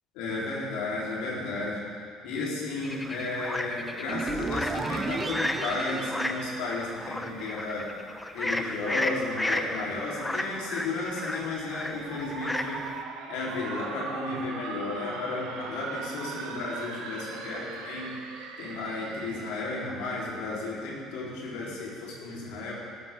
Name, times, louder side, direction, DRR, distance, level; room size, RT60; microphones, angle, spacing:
voice 1, 0.1-1.8 2.2-7.9 8.3-12.8 13.3-18.2 18.6-22.7, left 3 dB, 80° left, -5 dB, 4.0 m, -33 dB
sound 1, 2.8-13.0, left 1 dB, 10° left, 0.9 m, -33 dB
sound 2, 4.1-7.3, right 4 dB, 30° right, 0.9 m, -34 dB
sound 3, 10.8-19.7, right 5 dB, 80° right, 1.3 m, -40 dB
17.5 x 12.5 x 3.8 m, 2.3 s
supercardioid pair, 85°, 0 cm